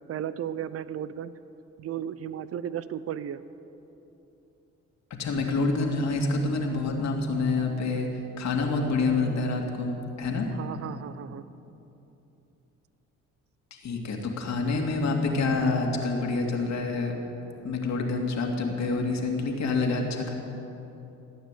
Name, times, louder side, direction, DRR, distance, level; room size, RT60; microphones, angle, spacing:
voice 1, 0.1-1.3 1.8-3.4 10.5-11.4, right 9 dB, 50° right, 15 dB, 0.6 m, -34 dB
voice 2, 5.2-8.1 8.4-10.5 13.7-17.1 17.6-20.3, left 3 dB, 65° left, 1 dB, 2.5 m, -27 dB
16.5 x 9.5 x 8.4 m, 3.0 s
cardioid pair, 90°, 30 cm